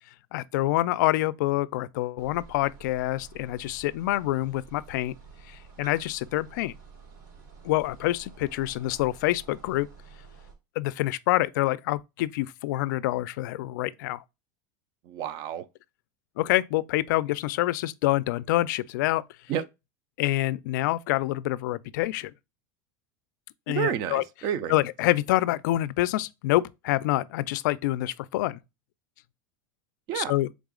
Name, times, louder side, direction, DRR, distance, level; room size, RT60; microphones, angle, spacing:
voice 1, 0.3-5.1 5.5-6.7 7.6-9.9 10.8-14.2 16.4-19.2 20.2-22.3 23.7-24.2 24.7-28.6 30.1-30.5, left 16 dB, 75° left, 0.3 m, -26 dB
sound 1, 2.2-10.5, right 4 dB, 85° right, 2.4 m, -50 dB
voice 2, 15.1-15.7 19.5-19.6 23.7-24.8 30.1-30.3, right 9 dB, 45° right, 0.5 m, -30 dB
4.0 x 3.6 x 3.6 m
supercardioid pair, 150°, 10 cm